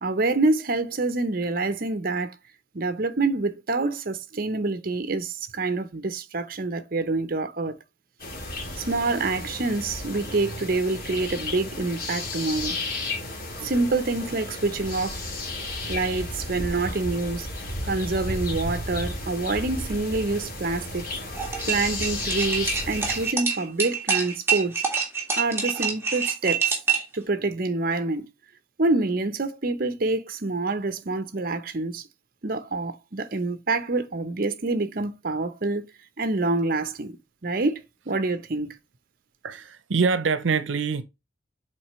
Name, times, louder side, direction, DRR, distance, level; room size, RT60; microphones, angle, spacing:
voice 1, 0.0-2.4 2.7-7.8 8.8-12.8 13.6-15.3 15.9-17.5 17.8-21.1 21.7-24.8 25.4-26.8 27.1-28.3 28.8-32.0 32.4-35.9 36.2-37.2 37.4-38.8, right 3 dB, 50° right, 0.7 m, -26 dB
sound 1, 8.2-23.3, left 2 dB, 50° left, 2.9 m, -33 dB
sound 2, 21.3-27.1, right 6 dB, 15° right, 1.8 m, -26 dB
voice 2, 39.4-41.0, right 5 dB, 85° right, 0.6 m, -24 dB
7.7 x 4.1 x 3.1 m
head